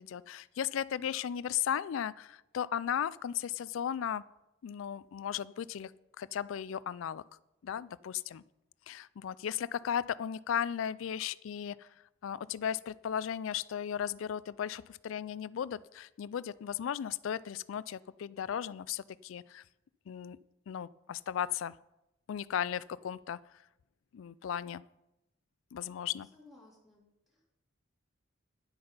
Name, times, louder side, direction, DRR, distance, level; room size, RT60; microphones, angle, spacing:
voice 1, 0.0-4.3 4.6-5.9 6.2-7.2 7.6-8.4 8.9-11.9 12.2-19.6 20.1-20.4 20.7-21.7 22.3-23.4 24.1-24.8 25.7-26.3, left 9 dB, 85° left, 20 dB, 0.3 m, -36 dB
voice 2, 26.3-27.4, left 2 dB, ahead, -4 dB, 2.8 m, -59 dB
10.5 x 7.9 x 5.2 m, 0.92 s
head